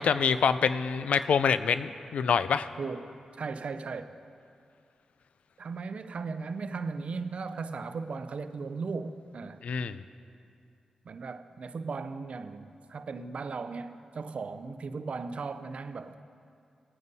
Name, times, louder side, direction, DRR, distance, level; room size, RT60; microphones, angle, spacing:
voice 1, 0.0-2.7 9.6-10.0, left 6 dB, 75° left, 13 dB, 0.4 m, -26 dB
voice 2, 2.8-3.1 3.4-4.2 5.6-9.6 11.0-16.2, right 4 dB, 65° right, 11 dB, 0.5 m, -37 dB
18.5 x 9.3 x 2.7 m, 2.4 s
cardioid pair, 45°, 2 cm